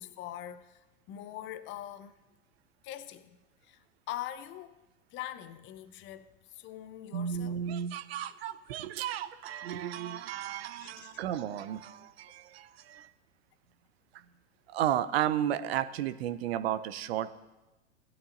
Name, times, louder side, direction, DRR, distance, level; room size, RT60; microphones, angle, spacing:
voice 1, 0.0-2.2 2.8-4.8 5.1-7.6 10.8-11.2, left 12 dB, 30° left, 0.7 m, -43 dB
voice 2, 7.1-13.1 14.7-17.3, right 10 dB, 55° right, 0.7 m, -33 dB
18.0 x 12.0 x 2.6 m
figure-of-eight pair, 95°, 36 cm